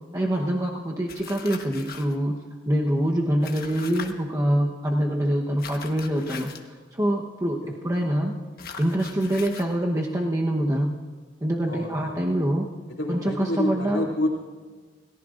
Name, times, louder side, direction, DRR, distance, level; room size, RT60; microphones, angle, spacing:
voice 1, 0.1-2.4 2.7-6.5 6.9-8.4 8.8-11.0 11.4-12.7 13.1-14.1, right 1 dB, 20° right, -1 dB, 1.0 m, -25 dB
sound 1, 1.1-2.1 3.4-4.1 5.6-6.7 8.6-9.7, left 6 dB, 55° left, 1.3 m, -40 dB
voice 2, 11.7-12.3 12.9-14.3, left 1 dB, 85° left, -6 dB, 2.7 m, -28 dB
28.5 x 18.5 x 2.5 m, 1.5 s
head